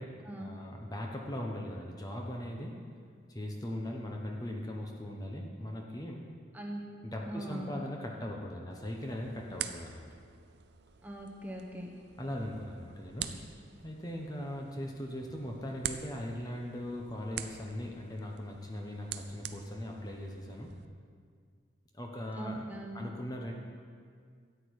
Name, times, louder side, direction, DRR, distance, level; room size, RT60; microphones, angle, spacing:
voice 1, 0.0-2.8 3.3-6.2 7.0-10.1 12.2-13.4 13.8-20.7 21.9-22.6 22.9-23.5, left 1 dB, 20° left, 0 dB, 0.9 m, -39 dB
voice 2, 7.3-7.8 11.0-11.9 22.3-23.0, right 1 dB, 10° right, 0 dB, 1.0 m, -41 dB
sound 1, 8.7-20.9, right 9 dB, 60° right, 0.5 m, -46 dB
13.5 x 8.8 x 4.8 m, 2.1 s
head